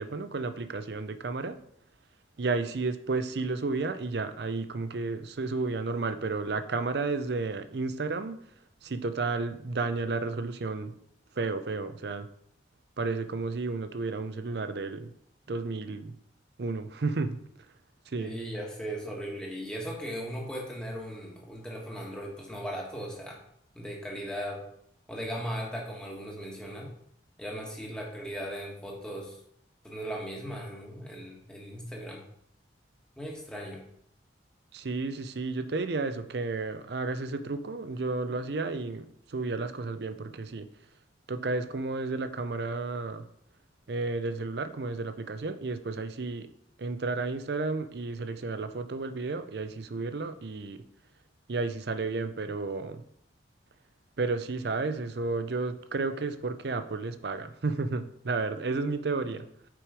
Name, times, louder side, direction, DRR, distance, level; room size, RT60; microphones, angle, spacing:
voice 1, 0.0-1.6 2.4-8.4 8.8-10.9 11.4-12.3 13.0-15.1 15.5-16.1 16.6-17.4 18.1-18.3 34.7-40.7 41.3-43.2 43.9-46.5 46.8-50.8 51.5-53.0 54.2-59.5, right 3 dB, 60° right, 10 dB, 0.5 m, -32 dB
voice 2, 18.2-23.4 23.7-24.6 25.1-26.9 27.4-29.4 29.8-32.2 33.2-33.8, equal, 5° left, -2 dB, 1.4 m, -37 dB
6.0 x 5.0 x 4.8 m, 0.70 s
head